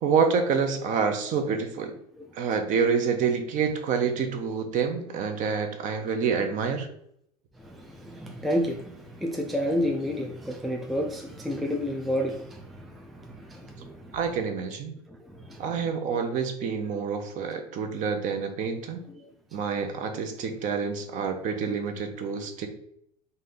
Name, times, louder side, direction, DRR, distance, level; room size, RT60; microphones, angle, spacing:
voice 1, 0.0-1.9 2.3-6.9 14.1-14.9 15.6-19.0 19.5-22.7, right 6 dB, 40° right, 0.7 m, -27 dB
voice 2, 7.6-14.2 15.3-15.6 19.2-19.3, equal, ahead, 0.4 m, -30 dB
4.2 x 2.7 x 3.9 m
figure-of-eight pair, 80°, 21 cm